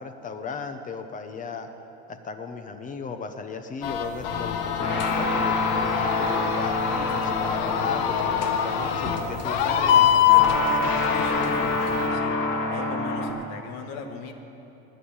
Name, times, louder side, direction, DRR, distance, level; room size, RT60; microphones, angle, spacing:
voice 1, 0.0-1.7 2.1-6.8 7.1-10.8, left 5 dB, 25° left, 8 dB, 0.9 m, -36 dB
sound 1, 3.8-12.1, left 9 dB, 85° left, 1.3 m, -24 dB
sound 2, 4.3-13.3, left 2 dB, 40° left, 2.4 m, -28 dB
voice 2, 11.1-12.4 12.7-14.3, left 5 dB, 60° left, 5 dB, 1.4 m, -38 dB
19.5 x 7.3 x 8.7 m, 3.0 s
cardioid pair, 135°, 29 cm